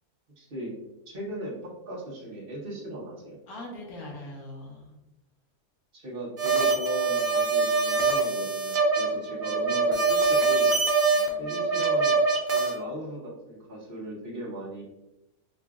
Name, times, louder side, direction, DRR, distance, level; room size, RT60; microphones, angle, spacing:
voice 1, 0.4-0.7 1.1-3.4 5.9-10.7 11.4-12.1 12.5-14.8, right 1 dB, 40° right, -6 dB, 1.2 m, -38 dB
voice 2, 3.5-5.0 9.1-9.6 11.1-11.7, left 1 dB, 80° left, -2 dB, 1.5 m, -43 dB
sound 1, 6.4-12.8, right 3 dB, 90° right, 0.4 m, -24 dB
4.9 x 2.4 x 2.4 m, 0.95 s
omnidirectional pair, 1.6 m